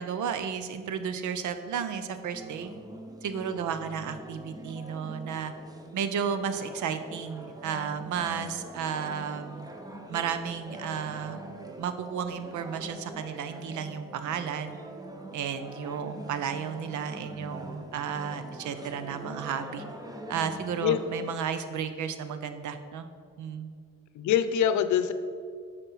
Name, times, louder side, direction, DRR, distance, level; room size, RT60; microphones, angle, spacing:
voice 1, 0.0-2.7 3.2-5.5 5.9-9.7 10.1-11.4 11.8-14.8 15.3-19.8 20.3-23.1 23.4-23.7, right 7 dB, 75° right, 9 dB, 0.8 m, -33 dB
sound 1, 2.3-21.3, right 1 dB, 10° right, 1.0 m, -44 dB
voice 2, 24.1-25.1, left 9 dB, 75° left, 11 dB, 0.7 m, -24 dB
8.2 x 5.4 x 5.6 m, 2.2 s
cardioid pair, 90°, 30 cm